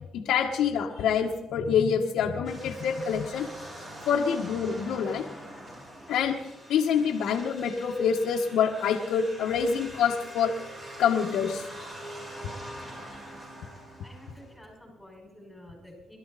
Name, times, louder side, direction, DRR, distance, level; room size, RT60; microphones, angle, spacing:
voice 1, 0.1-3.5 4.1-5.3 6.1-6.4 6.7-10.5 11.0-11.7, left 7 dB, 80° left, -1 dB, 1.4 m, -26 dB
sound 1, 2.4-14.6, right 1 dB, 30° right, 6.5 m, -44 dB
voice 2, 14.0-16.2, left 1 dB, 5° left, 0 dB, 5.4 m, -50 dB
23.0 x 12.5 x 4.2 m, 0.99 s
cardioid pair, 90°, 0 cm